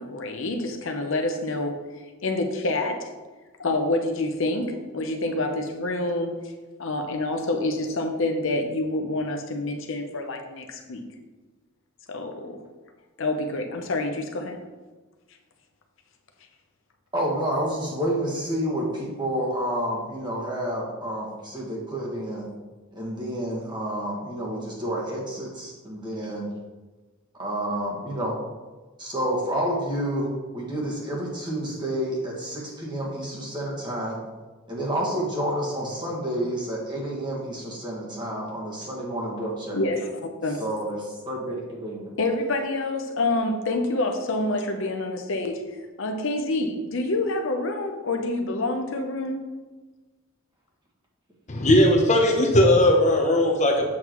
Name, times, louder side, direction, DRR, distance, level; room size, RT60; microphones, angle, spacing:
voice 1, 0.0-1.8 2.2-3.1 3.6-6.4 6.8-11.0 12.1-12.6 13.2-14.6 39.7-40.6 42.2-45.6 46.0-49.5, left 2 dB, 65° left, 4 dB, 0.8 m, -27 dB
voice 2, 17.1-22.5 22.9-26.5 27.4-28.4 29.0-34.2 34.7-39.8 40.6-42.1, right 1 dB, 20° right, -3 dB, 1.5 m, -29 dB
voice 3, 51.5-53.9, left 1 dB, 35° left, 1 dB, 0.8 m, -18 dB
7.5 x 5.9 x 3.1 m, 1.2 s
head